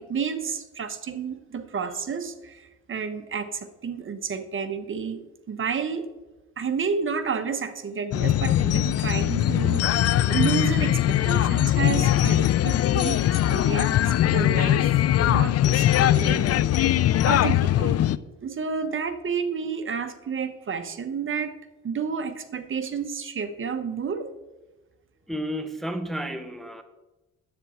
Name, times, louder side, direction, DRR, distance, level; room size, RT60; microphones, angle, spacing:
voice 1, 0.0-5.2 5.5-6.0 6.6-17.0 17.3-18.0 18.4-21.5 21.8-24.3, right 6 dB, 40° right, 9 dB, 1.1 m, -30 dB
sound 1, 8.1-18.2, left 12 dB, 55° left, 0.5 m, -21 dB
voice 2, 25.3-26.8, equal, ahead, 8 dB, 0.8 m, -32 dB
10.0 x 8.3 x 4.4 m, 1.1 s
cardioid pair, 90°, 30 cm